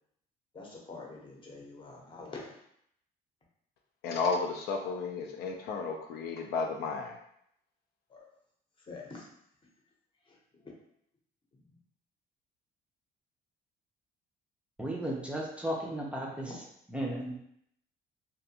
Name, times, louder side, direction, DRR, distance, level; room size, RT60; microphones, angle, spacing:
voice 1, 0.5-2.6 8.1-8.2 8.9-9.3 10.3-10.7 16.5-16.6, left 3 dB, 30° left, -2 dB, 0.7 m, -46 dB
voice 2, 4.0-7.2, left 4 dB, 75° left, 2 dB, 0.4 m, -33 dB
voice 3, 14.8-16.5 16.9-17.3, right 1 dB, 5° right, -3 dB, 0.4 m, -34 dB
2.5 x 2.2 x 2.7 m, 0.72 s
cardioid pair, 110°, 17 cm